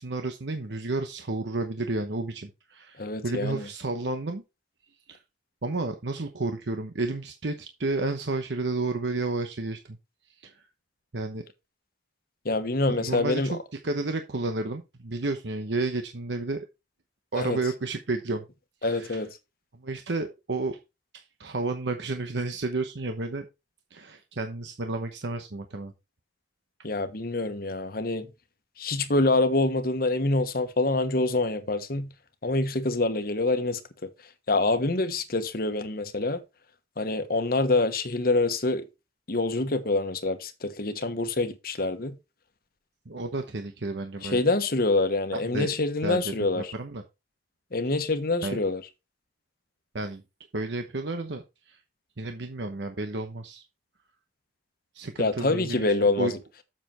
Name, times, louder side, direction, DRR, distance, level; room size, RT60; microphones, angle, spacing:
voice 1, 0.0-4.4 5.1-5.2 5.6-10.0 10.4-10.6 11.1-11.4 12.9-16.7 17.3-18.4 18.8-19.2 19.7-20.8 21.1-23.4 23.9-25.9 43.1-44.4 45.5-45.7 46.0-47.0 48.4-48.6 49.9-50.2 50.5-51.8 52.2-53.6 54.9-56.3, right 2 dB, 85° right, 1.0 m, -31 dB
voice 2, 3.0-3.7 12.4-13.5 17.4-17.6 18.8-19.4 26.8-28.3 28.8-32.1 32.4-34.1 34.5-36.4 37.0-38.9 39.3-42.2 44.2-46.7 47.7-48.8 55.2-56.4, left 2 dB, 55° left, 1.2 m, -26 dB
7.6 x 6.8 x 4.4 m
head